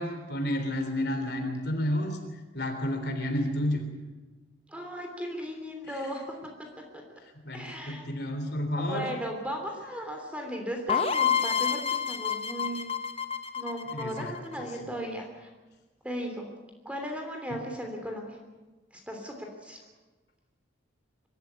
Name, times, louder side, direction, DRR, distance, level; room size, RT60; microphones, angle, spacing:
voice 1, 0.0-2.2 2.5-3.9 7.4-9.1 13.9-14.3 14.6-14.7, left 1 dB, 55° left, 5 dB, 3.5 m, -30 dB
voice 2, 4.7-6.5 6.9-7.0 7.5-8.1 8.8-13.0 13.5-15.5 16.0-16.4 16.8-18.4 18.9-19.8, equal, 5° right, 2 dB, 3.2 m, -36 dB
sound 1, 10.9-14.6, left 7 dB, 30° left, 1.0 m, -28 dB
23.5 x 13.5 x 9.7 m, 1.2 s
head